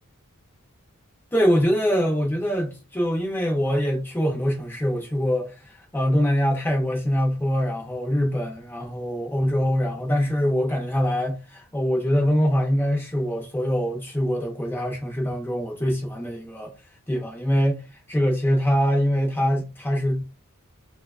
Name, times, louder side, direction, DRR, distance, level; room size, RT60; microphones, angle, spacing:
voice 1, 1.3-16.7 17.1-17.8 18.1-20.2, equal, 10° left, 0.5 m, -23 dB
2.6 x 2.3 x 2.3 m
head